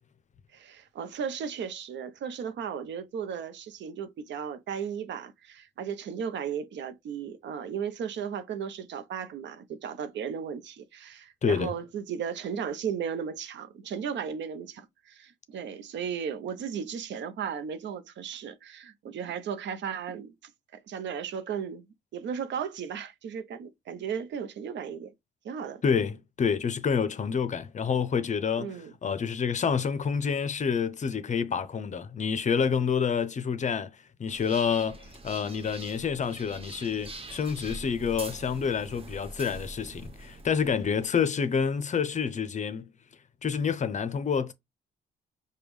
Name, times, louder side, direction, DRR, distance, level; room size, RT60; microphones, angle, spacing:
voice 1, 0.5-21.8 22.1-25.1 25.4-25.8 28.6-28.9, right 7 dB, 65° right, 0.7 m, -35 dB
voice 2, 11.4-11.7 25.8-42.8 43.4-44.5, left 6 dB, 40° left, 0.6 m, -28 dB
sound 1, 34.3-41.1, right 2 dB, 30° right, 0.9 m, -44 dB
5.1 x 2.3 x 3.1 m
cardioid pair, 90°, 20 cm